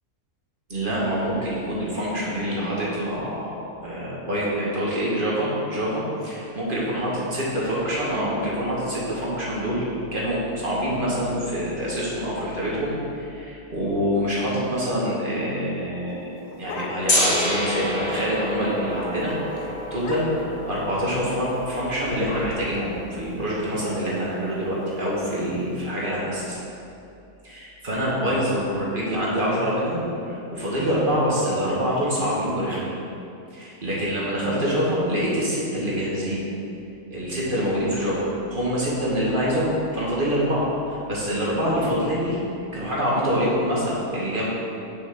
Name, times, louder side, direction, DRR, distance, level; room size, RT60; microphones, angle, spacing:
voice 1, 0.7-9.8 10.1-19.3 19.6-26.6 27.4-32.9 33.5-36.4 37.1-42.4 42.7-44.4, equal, 30° right, -6 dB, 2.1 m, -26 dB
sound 1, 16.1-17.4 17.7-17.8 18.1-18.4 18.7-18.9 19.3-19.4 19.9-20.6 21.4-23.5, left 3 dB, 60° left, 1.2 m, -39 dB
Gong, 17.1-23.0, left 1 dB, 75° left, 2.5 m, -28 dB
7.0 x 6.2 x 6.0 m, 2.7 s
omnidirectional pair, 1.7 m